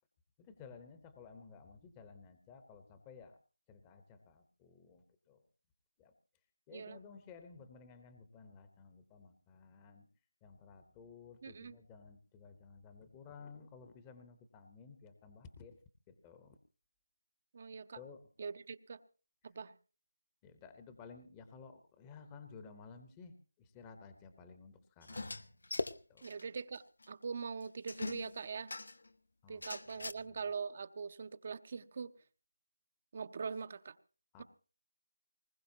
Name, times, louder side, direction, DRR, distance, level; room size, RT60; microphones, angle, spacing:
voice 1, 0.4-3.4 3.7-5.4 6.0-6.1 6.7-10.1 10.4-15.8 16.1-16.6 17.9-18.2 20.4-25.4 26.1-26.2 29.4-29.6 29.9-30.4 34.3-34.4, left 5 dB, 15° left, 8 dB, 0.9 m, -55 dB
voice 2, 11.4-11.8 17.5-18.0 18.4-19.0 19.4-19.7 26.2-28.7 29.5-32.1 33.1-34.0 34.4-34.5, right 5 dB, 40° right, 13 dB, 0.7 m, -42 dB
sound 1, 25.0-26.4 26.7-26.8 27.0-27.1 27.9-29.1 29.6-30.1, left 2 dB, 75° left, 0.9 m, -41 dB
20.0 x 20.0 x 2.8 m, 0.35 s
figure-of-eight pair, 165°, 0 cm